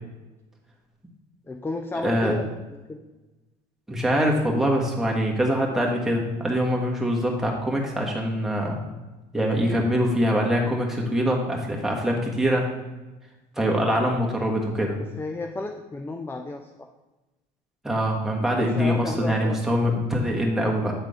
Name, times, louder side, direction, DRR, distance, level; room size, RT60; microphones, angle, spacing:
voice 1, 1.5-2.5 2.9-3.0 15.2-16.7 18.6-19.6, left 3 dB, 15° left, 5 dB, 0.5 m, -32 dB
voice 2, 2.0-2.4 3.9-8.8 9.3-12.7 13.6-15.0 17.8-20.9, equal, 5° right, -2 dB, 1.4 m, -24 dB
8.3 x 3.6 x 4.9 m, 1.1 s
cardioid pair, 110°, 16 cm